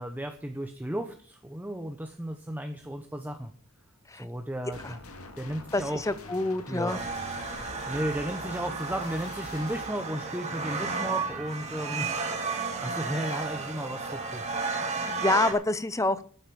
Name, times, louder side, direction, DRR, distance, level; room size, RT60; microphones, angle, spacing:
voice 1, 0.0-3.5 4.1-5.0 5.4-6.0 6.7-7.0 7.9-12.2 12.8-14.4, right 1 dB, 10° right, 5 dB, 1.0 m, -34 dB
sound 1, 4.7-9.9, left 2 dB, 80° left, 2.3 m, -45 dB
voice 2, 5.7-7.0 13.3-13.4 14.9-16.2, left 2 dB, 15° left, 15 dB, 0.8 m, -28 dB
sound 2, 6.9-15.5, right 4 dB, 30° right, 2.8 m, -33 dB
12.5 x 8.6 x 7.0 m, 0.44 s
head